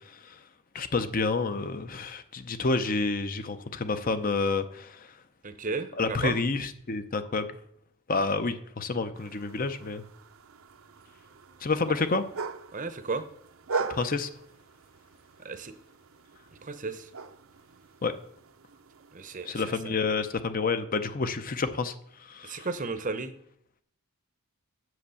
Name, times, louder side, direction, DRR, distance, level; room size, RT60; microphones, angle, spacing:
voice 1, 0.7-5.1 6.0-7.5 8.1-10.0 11.6-12.2 13.8-14.3 18.0-18.1 19.5-21.9 22.3-22.7, left 3 dB, 40° left, 11 dB, 0.7 m, -29 dB
voice 2, 5.4-6.4 11.9-12.1 12.7-13.2 15.4-15.8 16.6-17.1 19.1-20.0 22.4-23.3, right 4 dB, 35° right, 11 dB, 0.8 m, -34 dB
sound 1, 9.1-19.7, right 4 dB, 65° right, 0.7 m, -41 dB
7.8 x 7.0 x 6.9 m, 0.68 s
head